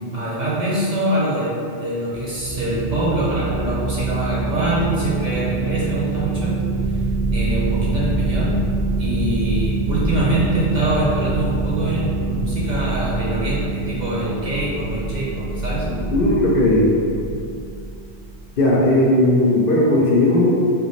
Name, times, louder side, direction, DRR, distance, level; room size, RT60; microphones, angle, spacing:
voice 1, 0.0-6.5 6.9-7.0 7.3-8.6 9.0-15.9, right 1 dB, 50° right, -7 dB, 0.6 m, -24 dB
sound 1, 2.1-18.4, right 3 dB, 25° left, 0.6 m, -25 dB
voice 2, 15.9-17.0 18.6-20.5, left 1 dB, 60° left, -4 dB, 0.7 m, -16 dB
3.5 x 2.4 x 3.1 m, 2.5 s
omnidirectional pair, 1.1 m